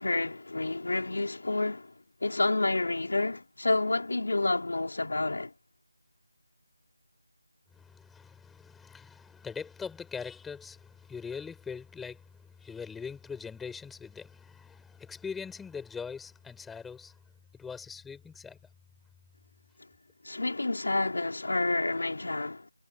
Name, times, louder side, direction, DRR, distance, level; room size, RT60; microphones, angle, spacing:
voice 1, 0.0-1.9 2.2-5.5 20.2-22.7, left 2 dB, 65° left, 4.3 m, -29 dB
voice 2, 7.7-17.2 17.5-18.6, left 6 dB, 5° left, 4.4 m, -42 dB
figure-of-eight pair, 170°, 0 cm